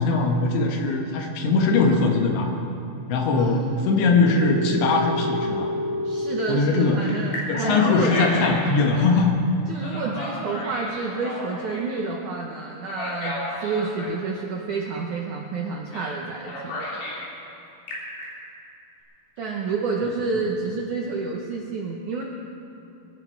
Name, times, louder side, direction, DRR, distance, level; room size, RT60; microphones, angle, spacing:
voice 1, 0.0-2.5 3.1-5.7 6.5-7.0 7.5-9.3, left 3 dB, 90° left, 2 dB, 3.8 m, -21 dB
voice 2, 3.3-4.2 6.0-8.1 9.7-16.8 17.1-17.2 19.4-22.2, right 4 dB, 75° right, 0 dB, 1.8 m, -29 dB
Telephone, 4.2-6.5 7.0-8.8 9.7-12.0 12.8-14.2 15.9-16.2 16.4-17.2 17.7-18.2, left 1 dB, 70° left, 5.6 m, -31 dB
24.0 x 12.5 x 4.6 m, 2.7 s
omnidirectional pair, 5.0 m